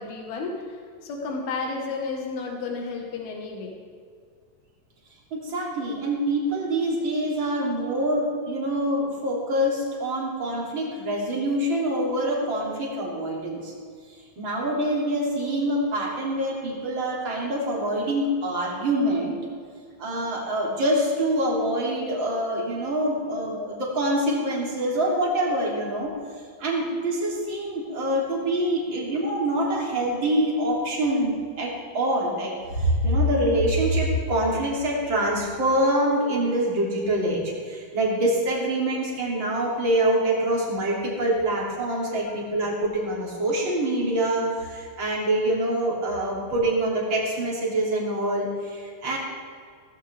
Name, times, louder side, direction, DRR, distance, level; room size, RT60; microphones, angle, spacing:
voice 1, 0.0-3.7 23.4-23.5 27.0-27.1, left 4 dB, 90° left, 1 dB, 3.5 m, -32 dB
voice 2, 5.3-13.7 14.4-19.4 20.0-26.2 26.6-49.2, right 1 dB, 35° right, -3 dB, 3.5 m, -25 dB
18.0 x 15.0 x 3.5 m, 2.1 s
omnidirectional pair, 4.2 m